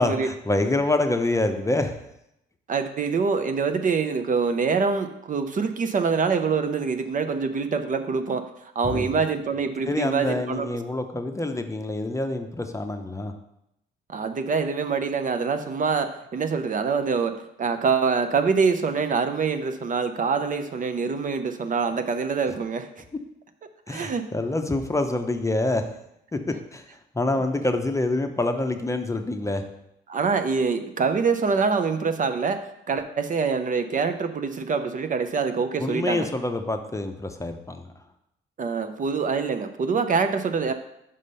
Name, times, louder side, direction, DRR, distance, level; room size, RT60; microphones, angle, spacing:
voice 1, 0.0-2.0 8.9-9.2 9.9-13.3 23.9-25.8 26.3-29.6 35.8-37.9, left 2 dB, 15° left, 6 dB, 0.7 m, -26 dB
voice 2, 2.7-10.7 14.1-23.0 23.9-24.3 30.1-36.3 38.6-40.7, right 5 dB, 40° right, 8 dB, 0.6 m, -25 dB
5.4 x 5.0 x 5.5 m, 0.82 s
cardioid pair, 90°, 20 cm